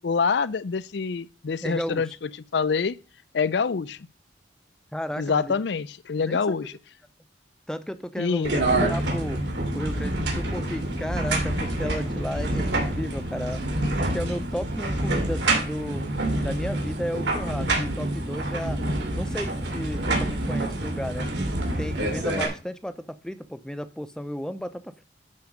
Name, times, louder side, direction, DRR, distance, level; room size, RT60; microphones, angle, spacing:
voice 1, 0.0-3.0 3.3-4.1 5.2-6.7 8.2-8.7, left 5 dB, 65° left, 0.5 m, -26 dB
voice 2, 1.6-2.0 4.9-5.6 6.2-6.5 7.7-8.6 8.9-9.4 9.7-13.6 14.0-16.1 16.4-18.8 19.1-21.3 21.8-25.0, equal, 5° left, 0.6 m, -33 dB
sound 1, 8.4-22.5, right 1 dB, 65° right, 2.6 m, -27 dB
10.5 x 4.7 x 5.3 m
head